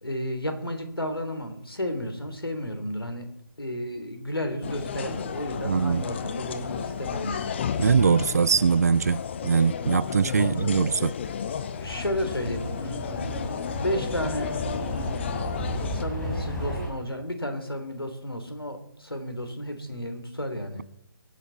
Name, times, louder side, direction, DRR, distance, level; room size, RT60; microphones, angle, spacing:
voice 1, 0.0-3.3 3.6-7.6 10.4-10.6 11.8-14.5 15.9-20.8, equal, 80° left, 3.4 m, -32 dB
sound 1, 4.6-16.0, left 7 dB, 30° left, 0.8 m, -33 dB
voice 2, 5.6-6.0 7.8-11.1, right 5 dB, 45° right, 0.4 m, -22 dB
sound 2, 11.8-16.9, equal, 10° left, 3.1 m, -33 dB
23.0 x 9.4 x 4.1 m
figure-of-eight pair, 145°, 12 cm